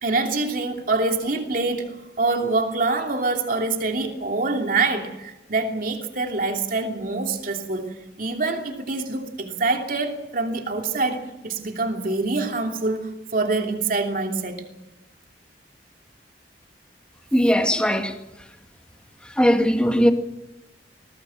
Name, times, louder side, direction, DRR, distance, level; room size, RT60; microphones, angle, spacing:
voice 1, 0.0-7.9 8.2-14.7, right 3 dB, 50° right, 2.9 m, -25 dB
voice 2, 17.3-18.1 19.4-20.1, equal, 5° left, 2.0 m, -19 dB
21.0 x 18.0 x 8.9 m
head